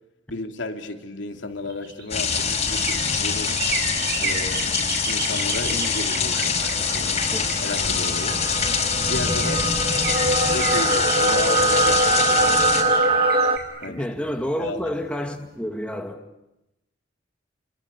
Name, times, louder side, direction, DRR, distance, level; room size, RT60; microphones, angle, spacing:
voice 1, 0.3-3.6 4.2-4.7 5.1-8.4 9.0-9.7 10.4-12.7 13.8-14.1 14.6-14.9, left 2 dB, 80° left, 2.7 m, -33 dB
sound 1, 1.6-8.4 8.9-9.0 9.2-15.0 15.4-15.5, right 4 dB, 55° right, 6.3 m, -33 dB
sound 2, 2.1-12.8, left 5 dB, 35° left, 5.1 m, -24 dB
sound 3, 6.7-13.6, right 2 dB, 30° right, 1.5 m, -22 dB
voice 2, 13.9-16.3, equal, 5° left, 2.2 m, -29 dB
30.0 x 23.0 x 8.4 m
head